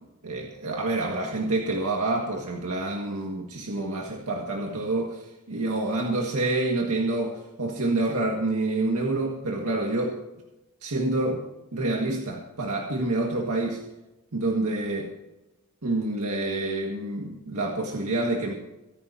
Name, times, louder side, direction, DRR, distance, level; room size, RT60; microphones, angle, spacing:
voice 1, 0.2-10.2 10.8-11.4 11.7-13.8 14.3-15.1 15.8-18.5, right 2 dB, 85° right, 0 dB, 1.8 m, -27 dB
24.0 x 10.5 x 2.8 m, 0.96 s
head